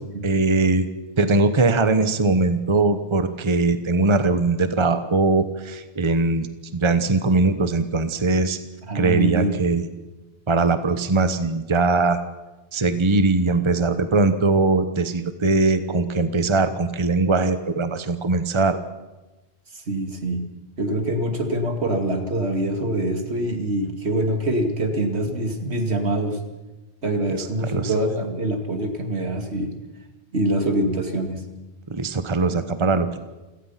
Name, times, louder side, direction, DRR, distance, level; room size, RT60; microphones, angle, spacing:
voice 1, 0.2-0.9 1.2-6.5 6.7-8.6 8.9-9.9 10.5-12.2 12.7-18.8 27.6-27.9 31.9-33.2, right 3 dB, 30° right, 10 dB, 1.1 m, -21 dB
voice 2, 8.9-9.6 19.7-20.5 20.8-26.4 27.0-29.7 30.3-31.4, right 1 dB, 80° right, 5 dB, 2.6 m, -24 dB
28.5 x 17.5 x 5.8 m, 1.1 s
omnidirectional pair, 1.1 m